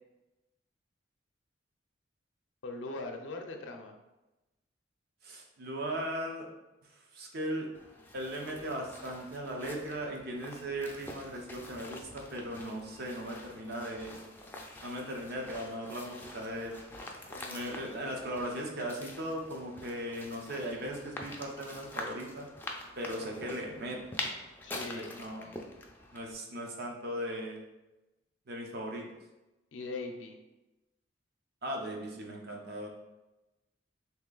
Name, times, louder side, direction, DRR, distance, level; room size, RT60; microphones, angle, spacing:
voice 1, 2.6-4.0 17.3-17.9 24.6-25.1 29.7-30.4, left 3 dB, 80° left, 3 dB, 0.5 m, -41 dB
voice 2, 5.2-6.5 7.1-7.7 8.1-14.2 14.8-16.8 17.5-22.5 23.0-24.0 24.9-25.5 26.1-27.6 28.5-29.1 31.6-32.9, right 1 dB, 55° right, 1 dB, 0.7 m, -38 dB
sound 1, 7.7-26.3, left 1 dB, 10° left, 0.4 m, -46 dB
3.2 x 2.9 x 3.8 m, 1.0 s
head